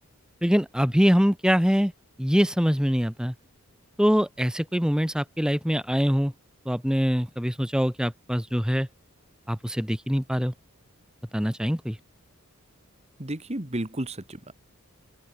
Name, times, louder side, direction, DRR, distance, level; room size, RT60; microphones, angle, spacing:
voice 1, 0.4-1.9 2.2-3.3 4.0-6.3 6.6-8.9 9.5-10.5 11.3-12.0, equal, 5° right, 1.7 m, -23 dB
voice 2, 13.2-14.5, right 1 dB, 30° right, 1.8 m, -32 dB
open air
head